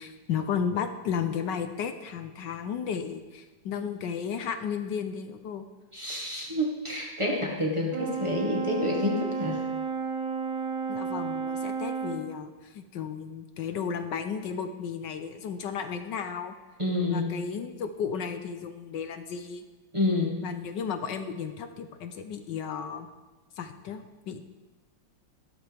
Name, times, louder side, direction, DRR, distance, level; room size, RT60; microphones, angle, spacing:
voice 1, 0.0-5.6 10.9-16.5 17.1-19.6 20.4-23.1 23.6-24.5, left 7 dB, 75° left, 8 dB, 1.3 m, -34 dB
voice 2, 5.9-9.6 16.8-17.4 19.9-20.4, left 2 dB, 15° right, -2 dB, 1.6 m, -28 dB
Brass instrument, 7.9-12.3, right 5 dB, 90° right, 1.8 m, -32 dB
15.0 x 12.5 x 3.5 m, 1.2 s
omnidirectional pair, 2.0 m